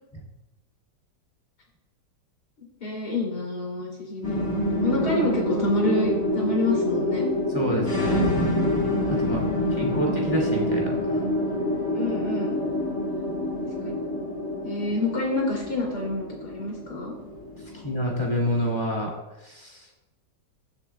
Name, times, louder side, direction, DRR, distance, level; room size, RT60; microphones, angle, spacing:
voice 1, 2.6-4.4 4.8-7.2 9.3-10.1 11.9-12.6 13.8-13.9 14.6-17.1, left 2 dB, 65° left, -2 dB, 3.4 m, -28 dB
sound 1, 4.2-18.8, left 1 dB, 40° left, 2.1 m, -27 dB
voice 2, 7.5-8.3 9.1-9.4 9.8-11.2 17.8-19.1 19.4-19.9, equal, 15° left, -2 dB, 2.2 m, -28 dB
19.5 x 7.5 x 2.2 m, 0.98 s
omnidirectional pair, 1.9 m